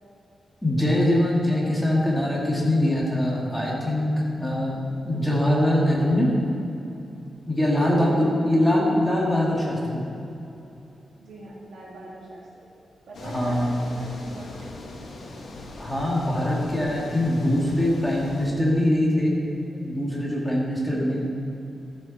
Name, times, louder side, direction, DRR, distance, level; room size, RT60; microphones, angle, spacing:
voice 1, 0.6-4.8 5.0-6.3 7.5-10.0 13.2-13.9 15.8-19.3 19.7-21.2, left 1 dB, 5° left, -5 dB, 2.3 m, -23 dB
voice 2, 7.8-8.7 11.2-12.5 13.1-14.7 20.9-21.2, right 2 dB, 85° right, -4 dB, 2.5 m, -42 dB
sound 1, 13.1-18.5, left 2 dB, 75° left, 1.5 m, -41 dB
13.5 x 7.7 x 4.3 m, 2.9 s
wide cardioid pair, 125°, 0 cm